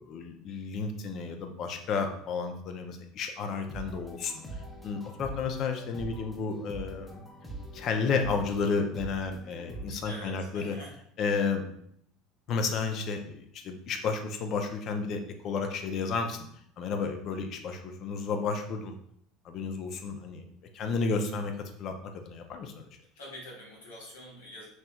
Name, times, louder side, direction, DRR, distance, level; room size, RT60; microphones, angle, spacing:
voice 1, 0.0-7.2 7.7-10.7 11.2-11.6 12.5-16.5 16.8-19.0 19.4-20.4 20.7-22.8, left 5 dB, 50° left, 5 dB, 0.5 m, -32 dB
sound 1, 3.7-9.9, right 1 dB, 5° left, 0.7 m, -43 dB
voice 2, 10.0-11.0 23.2-24.7, left 1 dB, 85° left, -4 dB, 1.1 m, -45 dB
3.2 x 2.8 x 2.3 m, 0.68 s
hypercardioid pair, 80°, 0 cm